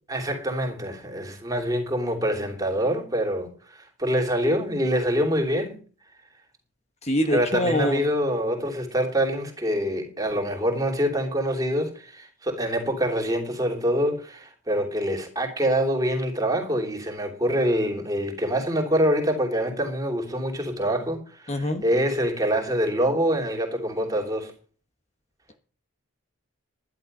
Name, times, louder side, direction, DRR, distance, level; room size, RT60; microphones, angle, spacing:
voice 1, 0.1-5.8 7.2-24.5, equal, 15° right, 3.1 m, -25 dB
voice 2, 7.1-8.0 21.5-21.8, left 1 dB, 30° left, 1.2 m, -24 dB
11.5 x 11.5 x 5.4 m
head